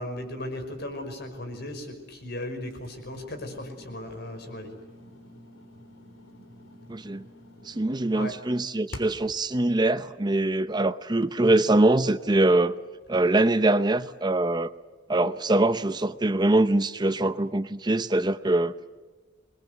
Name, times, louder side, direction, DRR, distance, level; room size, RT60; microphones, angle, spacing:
voice 1, 0.0-4.8 8.1-8.4, left 1 dB, 55° left, 7 dB, 5.6 m, -36 dB
sound 1, 2.7-9.4, left 1 dB, 85° left, 3.5 m, -48 dB
voice 2, 6.9-7.2 7.6-12.7 13.1-14.7 15.1-18.7, right 2 dB, 20° right, 12 dB, 0.7 m, -23 dB
28.5 x 21.5 x 8.1 m, 1.3 s
head